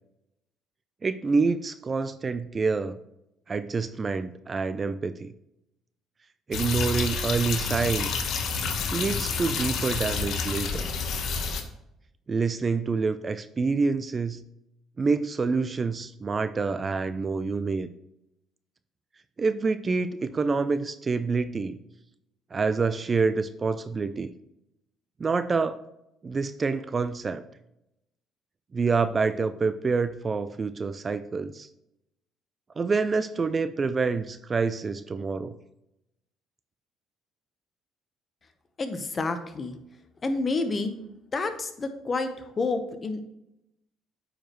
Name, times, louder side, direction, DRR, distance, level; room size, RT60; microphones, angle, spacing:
voice 1, 1.0-3.0 3.5-5.3 6.5-8.2 8.9-10.9 12.3-14.4 15.0-17.9 19.4-21.8 22.5-24.3 25.2-25.8 26.2-27.4 28.7-31.7 32.8-35.6, right 4 dB, 30° right, 12 dB, 0.4 m, -27 dB
sound 1, 6.5-11.6, left 5 dB, 60° left, 1.1 m, -29 dB
voice 2, 38.8-39.8 40.2-40.9 41.3-43.2, left 3 dB, 30° left, 8 dB, 1.0 m, -29 dB
9.0 x 5.0 x 3.1 m, 0.84 s
cardioid pair, 95°, 0 cm